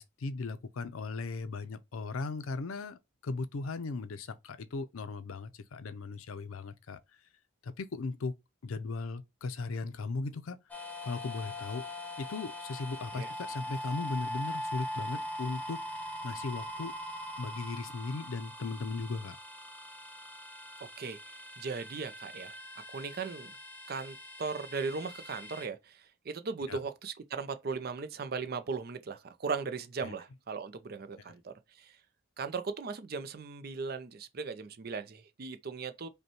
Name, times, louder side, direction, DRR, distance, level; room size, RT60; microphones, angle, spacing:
voice 1, 0.0-7.0 7.6-8.4 8.6-10.6 11.0-11.9 12.2-15.8 16.2-16.9 17.4-19.4 26.7-26.8 30.0-30.1, left 3 dB, 90° left, 0.5 m, -37 dB
sound 1, 10.7-25.7, left 1 dB, 10° left, 0.5 m, -42 dB
voice 2, 20.8-23.6 23.9-32.0 32.4-36.1, right 4 dB, 50° right, 0.4 m, -38 dB
5.2 x 2.2 x 3.0 m
head